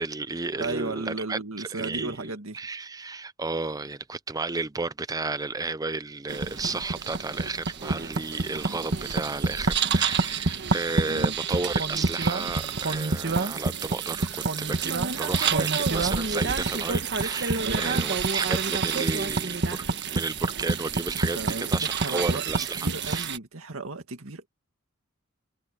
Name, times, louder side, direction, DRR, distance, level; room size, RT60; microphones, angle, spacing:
voice 1, 0.0-19.8 20.1-23.3, right 3 dB, 20° right, 0.6 m, -33 dB
voice 2, 0.6-2.6 11.0-11.4 17.5-18.1 21.3-22.4 22.8-24.5, right 3 dB, 80° right, 2.1 m, -35 dB
sound 1, 6.3-23.4, right 4 dB, 55° right, 1.5 m, -28 dB
head